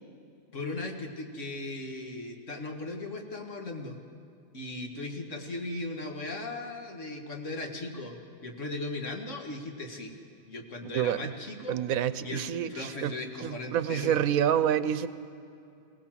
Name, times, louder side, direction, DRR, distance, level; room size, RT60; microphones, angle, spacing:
voice 1, 0.5-4.0 4.5-10.2 10.5-11.8 12.2-12.4 12.7-14.2, left 2 dB, 65° left, 3 dB, 2.2 m, -37 dB
voice 2, 10.9-11.3 11.7-13.1 13.4-15.1, right 9 dB, 90° right, 14 dB, 1.2 m, -28 dB
21.5 x 17.5 x 7.5 m, 2.6 s
omnidirectional pair, 1.4 m